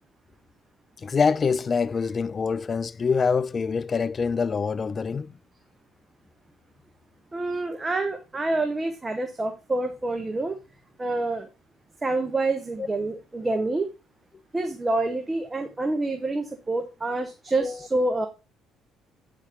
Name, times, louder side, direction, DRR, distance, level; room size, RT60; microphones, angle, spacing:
voice 1, 1.0-5.3 12.8-12.9 17.6-17.8, left 5 dB, 35° left, 0.3 m, -25 dB
voice 2, 7.3-10.6 11.0-11.5 12.0-13.9 14.5-18.3, right 2 dB, 20° right, 0.9 m, -27 dB
8.8 x 4.1 x 3.5 m
supercardioid pair, 85°, 0 cm